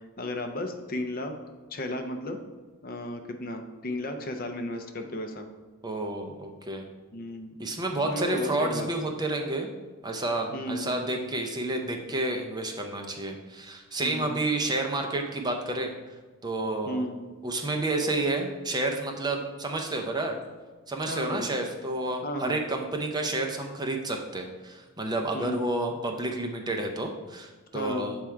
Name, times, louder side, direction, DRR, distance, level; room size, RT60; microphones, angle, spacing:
voice 1, 0.2-1.3 1.7-2.4 2.8-5.5 7.1-7.5 8.0-8.9 10.5-10.9 14.0-14.4 16.9-17.2 21.1-21.5 22.2-22.6 25.3-25.7 27.7-28.2, left 1 dB, 40° left, 5 dB, 0.5 m, -34 dB
voice 2, 5.8-6.8 7.6-9.7 10.0-15.9 16.4-17.1 17.4-20.3 20.9-28.2, right 2 dB, 20° right, 3 dB, 0.5 m, -30 dB
7.3 x 3.5 x 4.5 m, 1.3 s
head